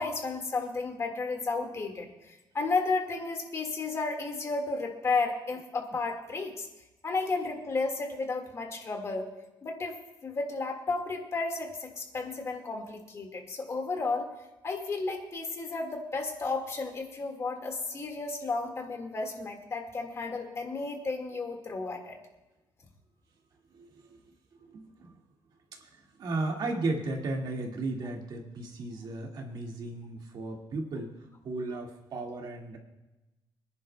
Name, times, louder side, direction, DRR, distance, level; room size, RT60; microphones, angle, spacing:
voice 1, 0.0-6.7 7.0-9.3 9.6-10.0 10.2-14.3 14.6-22.2, left 3 dB, 35° left, 3 dB, 1.7 m, -33 dB
voice 2, 23.7-24.2 24.6-25.1 25.8-31.1 31.4-32.8, right 2 dB, 60° right, 1 dB, 1.9 m, -35 dB
26.0 x 10.5 x 2.2 m, 1.0 s
cardioid pair, 150°, 8 cm